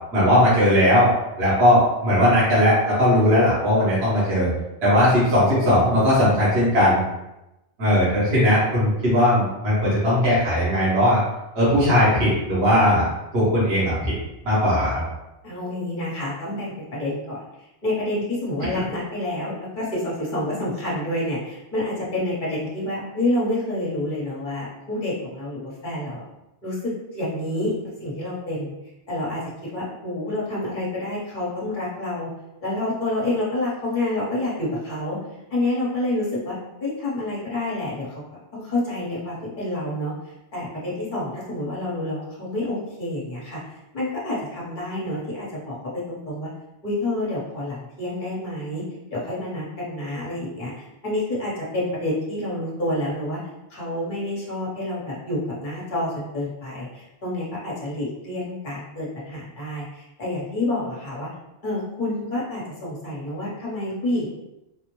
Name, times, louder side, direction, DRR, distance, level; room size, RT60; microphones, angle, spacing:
voice 1, 0.1-1.1 1.4-4.5 4.8-7.0 7.8-11.2 11.5-13.1 13.3-14.1 14.4-15.0 18.7-18.8, left 1 dB, 60° right, -10 dB, 1.5 m, -18 dB
voice 2, 15.4-17.4 17.8-26.2 26.6-27.7 28.0-28.7 29.1-29.4 29.7-32.3 32.6-35.2 35.5-38.2 38.5-40.1 40.5-43.6 43.9-46.5 46.8-48.8 49.1-53.4 53.7-61.3 61.6-64.3, left 1 dB, 45° left, -6 dB, 1.2 m, -28 dB
3.8 x 2.0 x 3.0 m, 0.94 s
omnidirectional pair, 1.2 m